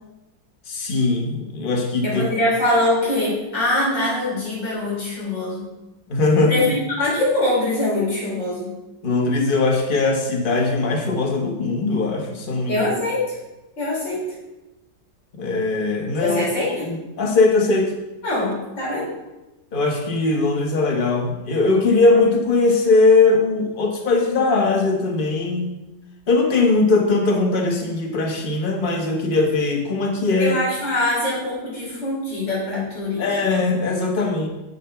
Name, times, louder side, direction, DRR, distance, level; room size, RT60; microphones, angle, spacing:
voice 1, 0.7-2.2 6.1-6.5 9.0-12.9 15.3-16.4 16.8-17.9 19.7-25.7 26.3-30.6 33.2-34.5, left 3 dB, 35° left, 2 dB, 1.2 m, -20 dB
voice 2, 2.0-5.6 6.5-8.7 12.7-13.2 13.8-14.2 16.2-16.9 18.2-19.1 30.4-33.6, left 1 dB, 85° left, -6 dB, 4.4 m, -23 dB
8.4 x 6.9 x 4.4 m, 1.0 s
omnidirectional pair, 2.0 m